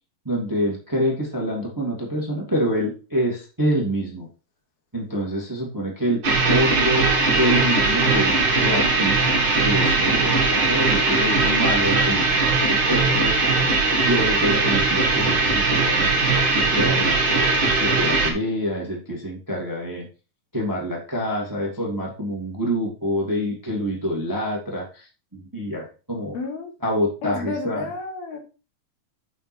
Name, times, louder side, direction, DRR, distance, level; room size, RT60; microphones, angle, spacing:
voice 1, 0.2-4.3 4.9-6.2 6.5-7.1 7.4-8.3 8.6-13.3 14.0-17.1 17.6-20.1 20.5-26.3 26.8-27.8, equal, 10° right, -2 dB, 1.3 m, -26 dB
sound 1, 6.2-18.3, right 3 dB, 40° right, 2.0 m, -20 dB
voice 2, 26.3-26.7 27.2-28.4, left 3 dB, 80° left, 2 dB, 3.6 m, -31 dB
6.6 x 6.5 x 4.3 m, 0.34 s
omnidirectional pair, 4.3 m